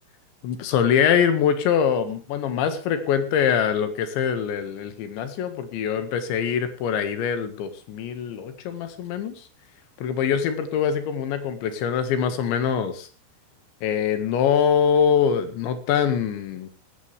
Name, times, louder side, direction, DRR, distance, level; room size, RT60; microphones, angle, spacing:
voice 1, 0.4-9.5 10.0-13.1 13.8-16.7, left 7 dB, 80° left, 9 dB, 4.0 m, -23 dB
18.0 x 15.0 x 3.4 m, 0.35 s
omnidirectional pair, 5.2 m